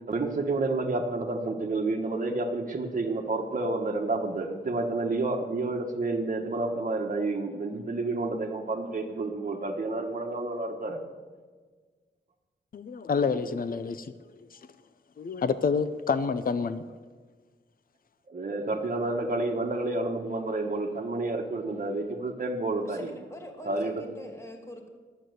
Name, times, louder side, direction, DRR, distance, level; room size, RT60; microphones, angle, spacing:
voice 1, 0.1-11.1 18.3-23.1 23.6-24.0, right 2 dB, 45° right, 1.3 m, -30 dB
voice 2, 12.7-14.1 15.2-16.8, left 5 dB, 50° left, 0.6 m, -28 dB
voice 3, 22.8-24.9, left 1 dB, 15° left, 2.2 m, -44 dB
11.5 x 7.9 x 7.9 m
wide cardioid pair, 115°, 19 cm